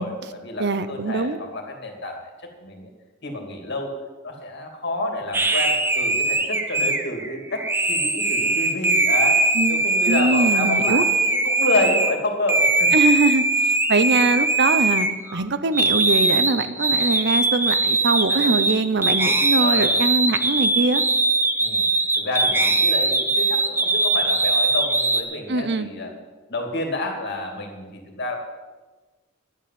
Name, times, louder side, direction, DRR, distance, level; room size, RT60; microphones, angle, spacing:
voice 1, 0.0-2.9 3.2-3.9 4.2-9.4 9.7-12.9 18.3-18.4 19.6-20.0 21.6-21.8 22.2-26.1 26.5-28.4, left 1 dB, 55° left, 3 dB, 2.7 m, -29 dB
voice 2, 0.6-1.4 9.5-11.0 12.9-21.0 25.5-25.9, right 3 dB, 55° right, 12 dB, 0.8 m, -22 dB
sound 1, 5.3-12.1 12.5-15.4 15.7-25.2, right 2 dB, 10° right, 0.9 m, -21 dB
10.5 x 8.5 x 9.2 m, 1.2 s
head